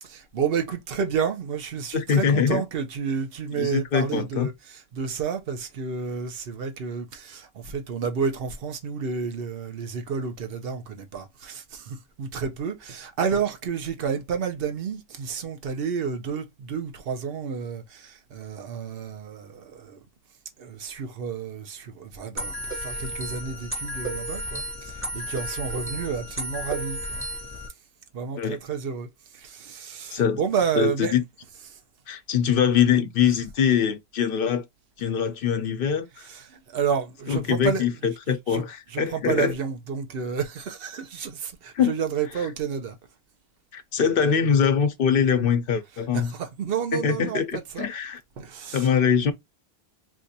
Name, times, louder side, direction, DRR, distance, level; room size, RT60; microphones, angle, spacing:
voice 1, 0.0-20.0 20.6-27.2 28.1-31.8 33.2-33.3 36.1-43.0 45.9-47.9 48.4-48.9, right 6 dB, 70° right, 1.0 m, -31 dB
voice 2, 1.9-2.6 3.6-4.5 28.4-28.6 30.1-30.4 30.8-31.2 32.1-34.6 35.0-36.3 37.3-39.5 41.7-41.9 43.7-46.3 46.9-48.2 48.7-49.3, left 7 dB, 65° left, 0.8 m, -23 dB
sound 1, 22.4-27.7, right 1 dB, 15° right, 1.0 m, -33 dB
4.5 x 2.5 x 2.7 m
omnidirectional pair, 1.0 m